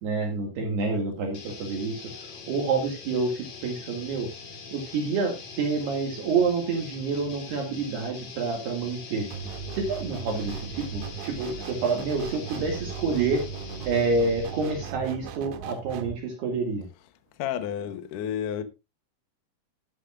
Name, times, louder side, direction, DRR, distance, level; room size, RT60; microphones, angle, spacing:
voice 1, 0.0-2.1 2.5-4.3 4.7-9.3 9.7-13.4 13.9-16.9, right 4 dB, 65° right, 3.9 m, -28 dB
sound 1, 1.3-15.0, left 4 dB, 50° left, 1.8 m, -43 dB
sound 2, 9.3-16.2, right 7 dB, 80° right, 3.5 m, -37 dB
voice 2, 17.4-18.6, left 9 dB, 80° left, 1.9 m, -30 dB
13.0 x 11.5 x 2.5 m
omnidirectional pair, 5.4 m